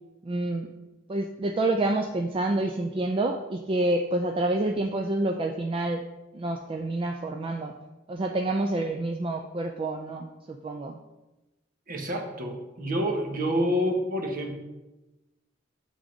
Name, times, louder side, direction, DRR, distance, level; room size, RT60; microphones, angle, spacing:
voice 1, 0.2-0.7 1.1-6.0 6.3-7.7 8.1-11.0, right 2 dB, 30° right, 3 dB, 0.4 m, -28 dB
voice 2, 11.9-14.6, equal, 50° right, 3 dB, 1.0 m, -28 dB
7.2 x 3.6 x 5.0 m, 1.1 s
head